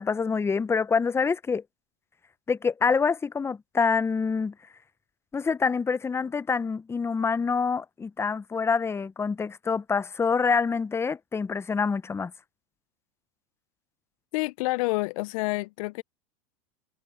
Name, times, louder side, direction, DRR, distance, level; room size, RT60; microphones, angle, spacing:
voice 1, 0.0-1.6 2.5-4.5 5.3-12.3, left 5 dB, 15° left, 0.6 m, -26 dB
voice 2, 14.3-16.0, left 23 dB, 70° left, 0.4 m, -28 dB
hypercardioid pair, 105°, 19 cm